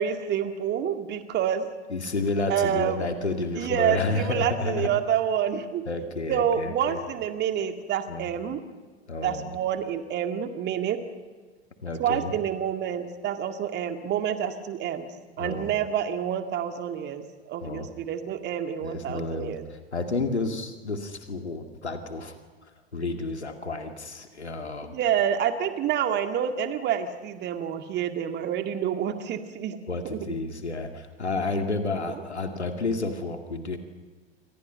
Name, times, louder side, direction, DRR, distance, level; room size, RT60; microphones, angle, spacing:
voice 1, 0.0-1.7 2.5-3.0 3.6-5.8 6.3-8.6 9.2-11.0 12.0-15.1 15.4-19.6 24.8-29.8 30.1-30.3 32.1-32.2, right 9 dB, 30° right, 7 dB, 2.1 m, -28 dB
voice 2, 1.9-4.9 5.9-7.0 8.1-8.3 9.1-9.5 11.8-12.3 15.4-15.7 17.6-17.9 18.8-22.4 22.9-24.9 29.9-33.8, left 3 dB, 80° left, 6 dB, 2.3 m, -31 dB
28.5 x 25.0 x 5.7 m, 1.4 s
figure-of-eight pair, 85°, 33 cm